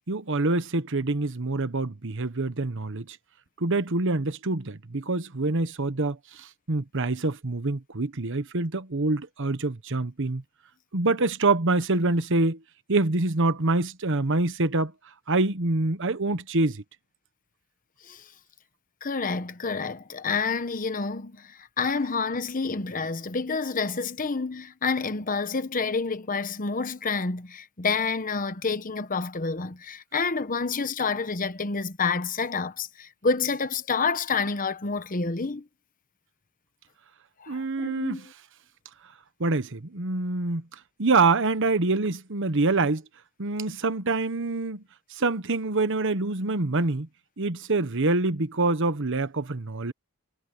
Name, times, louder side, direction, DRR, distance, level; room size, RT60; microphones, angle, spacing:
voice 1, 0.1-3.2 3.6-10.4 10.9-12.6 12.9-14.9 15.3-16.8 37.5-38.3 39.4-40.6 41.0-43.0 43.4-44.8 45.1-47.1 47.4-49.9, right 3 dB, 55° right, 1.2 m, -26 dB
voice 2, 19.0-35.6 37.4-38.2, left 4 dB, 40° left, 1.0 m, -28 dB
head